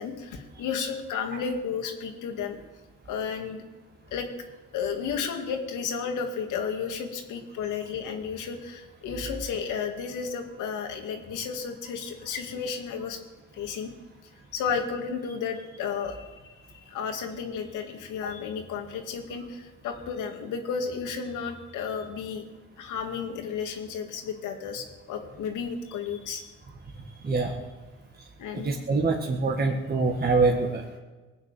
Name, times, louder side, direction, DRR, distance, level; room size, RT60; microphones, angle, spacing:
voice 1, 0.0-2.6 3.1-3.6 4.1-4.3 4.7-13.2 13.5-13.9 14.5-16.3 16.6-22.4 22.8-26.5 28.4-28.7, left 6 dB, 90° left, 4 dB, 2.2 m, -33 dB
voice 2, 27.2-27.6 28.2-28.3 28.5-31.0, right 3 dB, 30° right, 0 dB, 1.8 m, -25 dB
20.0 x 6.8 x 9.0 m, 1.3 s
cardioid pair, 90°, 30 cm